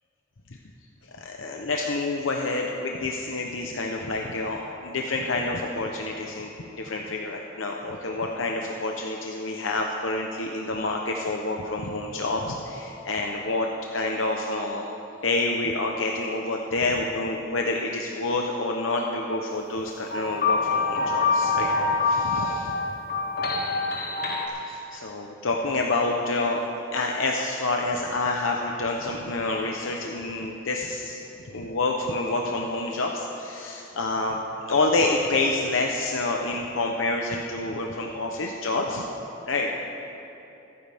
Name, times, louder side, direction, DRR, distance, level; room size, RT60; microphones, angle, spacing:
voice 1, 1.1-14.9 15.2-21.7 22.0-22.5 24.5-31.2 31.5-39.0 39.5-39.8, left 2 dB, 80° left, 0 dB, 0.9 m, -28 dB
sound 1, 20.1-24.5, left 3 dB, 50° left, 1.5 m, -25 dB
25.5 x 9.5 x 3.6 m, 2.9 s
head